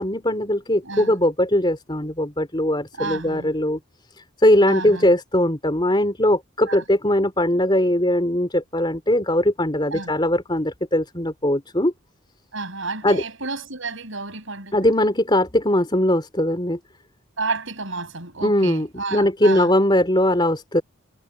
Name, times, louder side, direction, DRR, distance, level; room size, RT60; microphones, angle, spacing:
voice 1, 0.0-3.8 4.4-11.9 13.0-13.2 14.7-16.8 18.4-20.8, left 1 dB, 20° left, 3.8 m, -20 dB
voice 2, 0.8-1.1 2.9-3.5 4.7-5.1 6.7-6.8 9.9-10.1 12.5-14.9 17.4-19.7, right 3 dB, 60° right, 7.9 m, -31 dB
head